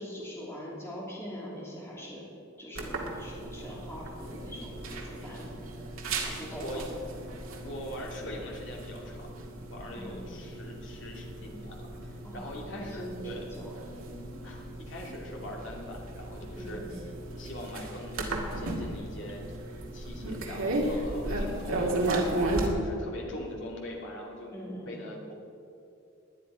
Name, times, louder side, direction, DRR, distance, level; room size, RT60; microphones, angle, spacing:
voice 1, 0.0-2.2 2.6-5.5 6.2-7.0 9.9-10.2 12.2-14.0 16.5-17.0 21.2-21.4 24.5-25.0, equal, 10° left, -6 dB, 2.9 m, -42 dB
sound 1, 2.8-22.7, right 2 dB, 80° right, 2.0 m, -35 dB
voice 2, 6.1-6.9 7.6-13.5 14.4-17.0 17.3-19.5 19.9-22.0 22.4-25.3, left 1 dB, 60° left, -1 dB, 2.6 m, -42 dB
19.0 x 10.5 x 4.9 m, 2.6 s
head